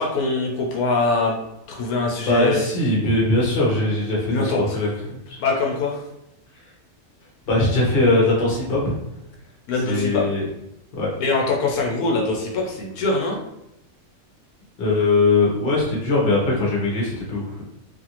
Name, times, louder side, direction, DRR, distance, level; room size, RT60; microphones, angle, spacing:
voice 1, 0.0-1.4 1.7-2.6 4.3-4.8 5.4-6.0 9.7-10.3 11.2-13.4, left 3 dB, 85° left, 0 dB, 1.1 m, -23 dB
voice 2, 2.3-5.4 7.5-8.9 9.9-10.5 11.0-11.1 14.8-17.6, left 2 dB, 45° left, -3 dB, 0.9 m, -21 dB
2.6 x 2.5 x 2.9 m, 0.84 s
omnidirectional pair, 1.5 m